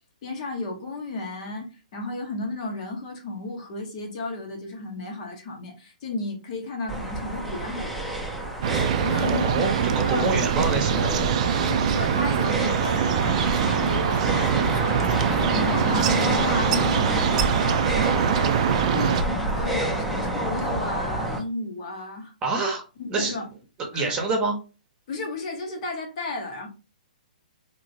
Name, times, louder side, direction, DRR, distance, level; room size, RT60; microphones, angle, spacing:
voice 1, 0.2-8.1 9.0-9.5 10.0-10.3 11.6-18.3 18.7-22.3 23.0-23.5 23.9-24.1 25.1-26.7, left 2 dB, 45° left, 1.1 m, -33 dB
sound 1, 6.9-21.4, right 1 dB, ahead, 0.6 m, -28 dB
sound 2, 8.6-19.2, right 8 dB, 50° right, 0.4 m, -24 dB
voice 2, 9.2-11.4 22.4-22.8 23.1-23.3 23.9-24.6, right 3 dB, 20° right, 1.0 m, -26 dB
sound 3, 10.2-19.9, equal, 80° left, 0.9 m, -40 dB
3.0 x 2.8 x 2.7 m
hypercardioid pair, 130°, 5 cm